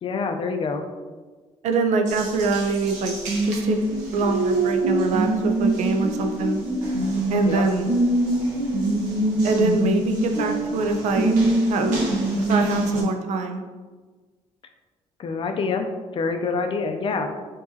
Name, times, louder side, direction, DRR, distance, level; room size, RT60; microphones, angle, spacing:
voice 1, 0.0-0.9 7.4-7.6 15.2-15.9 16.1-17.3, left 4 dB, 45° left, 6 dB, 0.4 m, -26 dB
voice 2, 1.6-3.1 3.4-3.8 4.1-6.6 7.3-7.9 9.4-11.4 11.7-11.9 12.5-13.6, right 3 dB, 70° right, 5 dB, 0.5 m, -24 dB
Water tap faucet, 2.1-13.0, right 2 dB, 85° right, 0.9 m, -24 dB
4.6 x 2.9 x 2.7 m, 1.3 s
cardioid pair, 115°, 12 cm